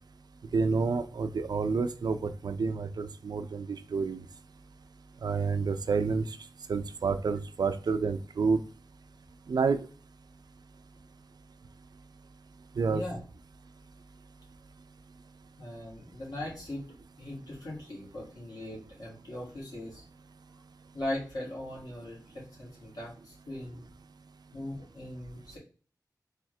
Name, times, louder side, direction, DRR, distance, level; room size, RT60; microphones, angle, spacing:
voice 1, 0.5-4.3 5.2-6.4 6.7-8.6 9.5-9.8 12.8-13.0, right 4 dB, 75° right, 10 dB, 0.4 m, -29 dB
voice 2, 15.6-16.9 17.2-20.0 20.9-23.8 24.5-25.6, left 1 dB, 65° left, -5 dB, 2.2 m, -39 dB
3.6 x 3.5 x 3.2 m, 0.39 s
wide cardioid pair, 100°, 7 cm